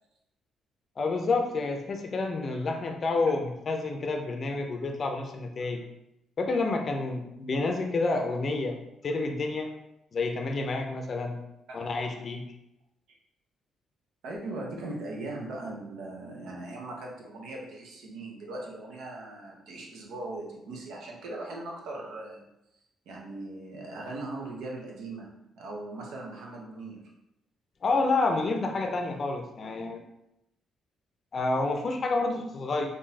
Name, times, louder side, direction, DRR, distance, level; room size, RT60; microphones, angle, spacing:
voice 1, 1.0-5.8 6.4-8.8 9.0-9.7 10.1-11.4 11.7-12.4 27.8-30.0 31.3-32.9, left 3 dB, 45° left, 4 dB, 0.5 m, -29 dB
voice 2, 14.2-22.5 23.1-27.1, right 2 dB, 80° right, -1 dB, 0.8 m, -39 dB
3.7 x 2.7 x 2.8 m, 0.86 s
cardioid pair, 90°, 0 cm